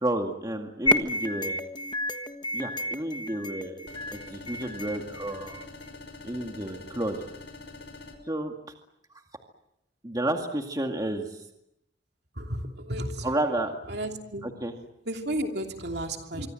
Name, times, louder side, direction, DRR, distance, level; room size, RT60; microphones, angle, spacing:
voice 1, 0.0-1.6 2.5-5.7 6.2-7.2 8.3-8.5 10.0-11.4 13.2-13.7 14.6-14.7, right 1 dB, 20° right, 3 dB, 2.1 m, -31 dB
sound 1, 0.9-5.9, left 1 dB, 25° left, 1.3 m, -31 dB
sound 2, 3.9-8.1, left 2 dB, 70° left, 5.6 m, -45 dB
voice 2, 12.3-13.4 13.9-14.5 15.0-16.5, right 1 dB, 60° right, 4 dB, 2.9 m, -33 dB
25.0 x 25.0 x 7.7 m, 0.80 s
head